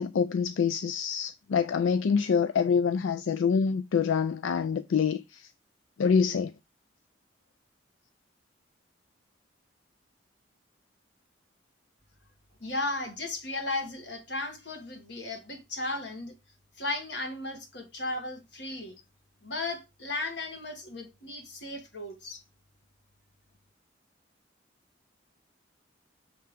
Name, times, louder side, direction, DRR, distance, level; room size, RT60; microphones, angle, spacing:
voice 1, 0.0-5.5 6.0-6.5, left 6 dB, 85° left, 0.4 m, -26 dB
voice 2, 12.6-16.3 16.8-19.0 19.4-22.4, left 2 dB, 65° left, 1.7 m, -35 dB
6.6 x 3.4 x 5.0 m
head